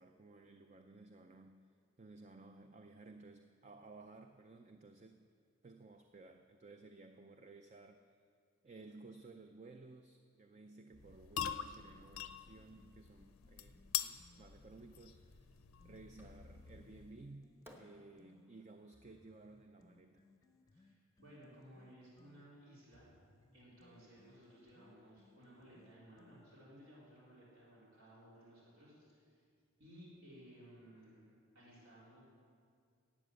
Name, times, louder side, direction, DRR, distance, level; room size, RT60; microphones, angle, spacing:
voice 1, 0.0-1.6 2.0-5.3 5.6-8.1 8.6-15.6 15.8-20.3, right 3 dB, 30° right, 6 dB, 0.4 m, -57 dB
sound 1, 10.9-17.3, left 10 dB, 85° left, 0.5 m, -45 dB
sound 2, 10.9-14.5 14.9-18.5 18.9-26.7, left 2 dB, 15° left, 0.7 m, -68 dB
Fireworks, 16.2-16.8 17.6-20.8, equal, 10° right, 1.1 m, -64 dB
voice 2, 20.7-23.2 23.5-29.4 29.8-32.2, equal, 70° right, -7 dB, 3.9 m, -59 dB
12.5 x 8.8 x 7.9 m, 2.3 s
head